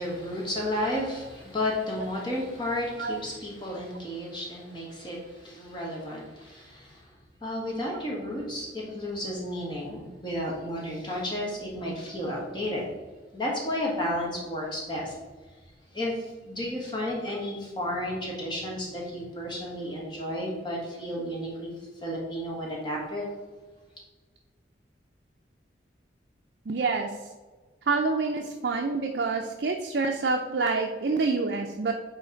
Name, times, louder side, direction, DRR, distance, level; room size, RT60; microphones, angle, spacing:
voice 1, 0.0-7.1 7.4-12.9 13.3-15.2 15.9-23.3, left 1 dB, 25° left, -3 dB, 1.5 m, -32 dB
voice 2, 26.7-27.1 27.9-31.9, right 4 dB, 60° right, 3 dB, 0.4 m, -27 dB
8.4 x 3.2 x 3.9 m, 1.3 s
head